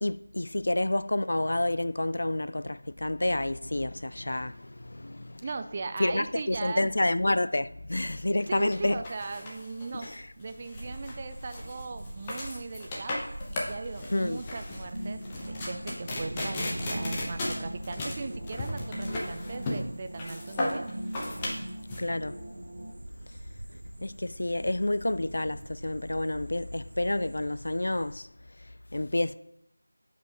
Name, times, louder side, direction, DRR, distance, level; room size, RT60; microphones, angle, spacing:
voice 1, 0.0-5.4 6.0-9.0 9.9-10.3 14.1-14.4 22.0-22.4 23.7-28.3 28.6-29.3, left 1 dB, 55° left, 0.3 m, -29 dB
voice 2, 5.4-6.9 8.5-13.2 13.7-16.6 16.9-21.0, right 3 dB, 25° right, 0.4 m, -38 dB
sound 1, 8.4-22.0, left 1 dB, 15° left, 0.9 m, -36 dB
sound 2, 10.7-28.2, right 1 dB, 60° right, 0.8 m, -44 dB
sound 3, 14.9-22.9, right 1 dB, 40° right, 1.9 m, -41 dB
9.8 x 5.2 x 3.8 m
figure-of-eight pair, 170°, 0 cm